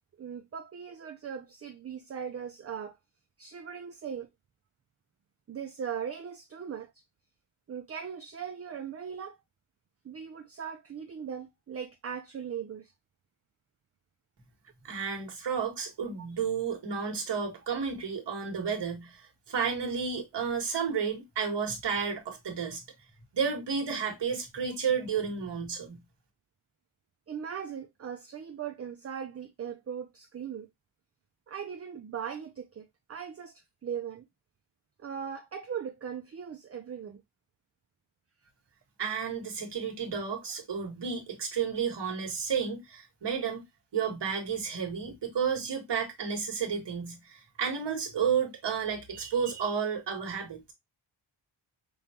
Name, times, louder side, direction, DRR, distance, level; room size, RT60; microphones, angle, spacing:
voice 1, 0.2-3.0 3.4-4.3 5.5-6.9 7.7-9.4 10.0-12.9 16.2-16.3 27.3-30.7 31.5-34.3 35.0-37.2, right 7 dB, 30° right, 0.4 m, -39 dB
voice 2, 14.8-19.2 19.5-22.8 23.3-26.0 39.0-43.6 43.9-50.7, right 6 dB, 60° right, 1.6 m, -32 dB
5.4 x 2.3 x 2.8 m
wide cardioid pair, 140°, 48 cm